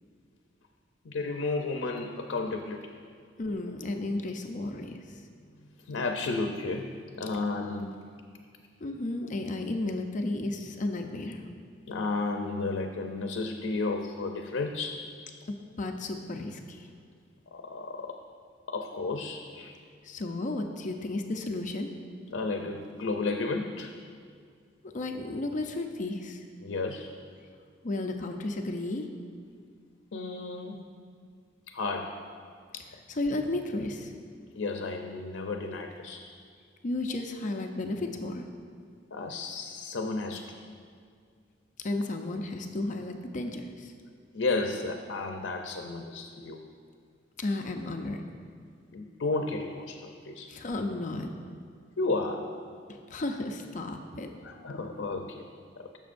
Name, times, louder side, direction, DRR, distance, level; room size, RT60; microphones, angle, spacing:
voice 1, 1.0-2.9 5.6-8.0 11.9-15.0 17.5-18.2 18.7-19.7 22.3-23.9 26.6-27.1 30.1-30.9 31.7-32.2 34.5-36.2 39.1-40.6 44.3-46.6 48.9-50.5 52.0-52.5 54.4-55.5 55.8-55.9, left 3 dB, 90° left, 4 dB, 0.6 m, -33 dB
voice 2, 3.4-5.2 8.8-11.4 15.5-16.9 20.0-21.9 24.8-26.4 27.8-29.1 32.7-34.1 36.8-38.4 41.8-43.9 47.4-48.2 50.5-51.3 52.9-54.3, left 2 dB, 45° left, 4 dB, 0.5 m, -33 dB
15.5 x 6.9 x 2.6 m, 2.2 s
head